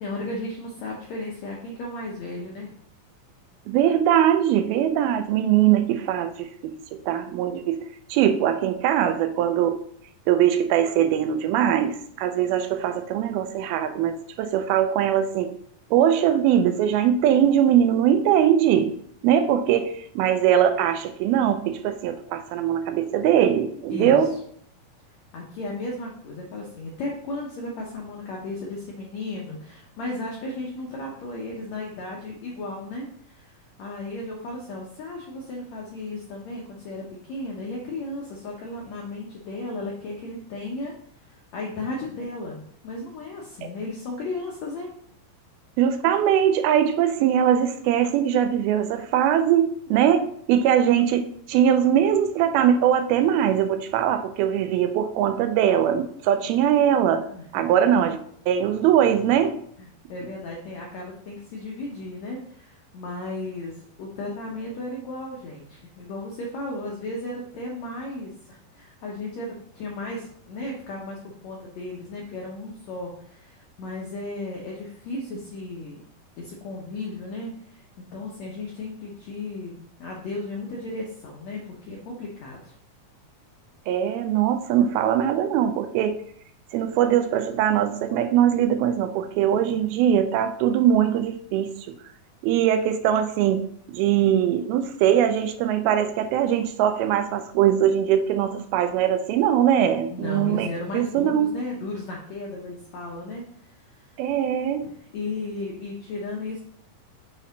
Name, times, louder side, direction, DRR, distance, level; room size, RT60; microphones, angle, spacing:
voice 1, 0.0-2.7 23.9-24.2 25.3-40.9 41.2-44.9 57.3-57.8 60.1-76.0 76.4-77.8 78.1-82.7 89.5-89.7 100.1-104.0 104.8-106.6, left 2 dB, 80° left, -2 dB, 1.5 m, -35 dB
voice 2, 3.7-7.8 8.1-9.8 10.3-15.5 15.9-18.9 19.2-24.3 45.8-57.2 57.5-58.2 58.5-59.6 83.9-86.2 86.7-91.7 92.4-93.6 93.9-100.7 100.9-101.6 104.2-104.9, right 10 dB, 85° right, 8 dB, 2.5 m, -21 dB
6.1 x 4.3 x 3.9 m, 0.64 s
omnidirectional pair, 4.3 m